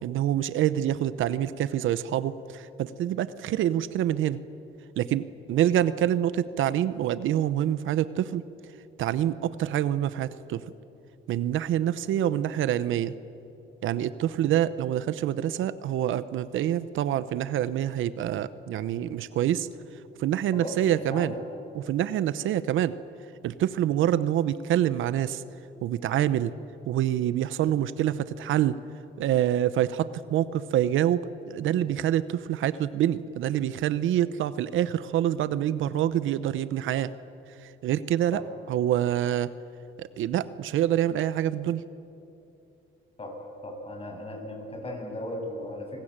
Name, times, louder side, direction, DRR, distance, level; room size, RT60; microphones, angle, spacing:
voice 1, 0.0-4.4 5.0-8.4 9.0-10.6 11.3-13.1 13.8-19.7 20.2-21.3 21.7-22.9 23.4-25.4 25.8-26.5 26.9-28.8 29.2-37.1 37.6-38.4 38.7-39.5 40.0-41.8, right 11 dB, 80° right, 15 dB, 0.9 m, -26 dB
voice 2, 20.5-21.4 38.3-38.4 43.2-43.3 43.6-46.0, left 1 dB, 30° left, 2 dB, 7.5 m, -36 dB
27.5 x 20.0 x 8.9 m, 2.7 s
cardioid pair, 90°, 20 cm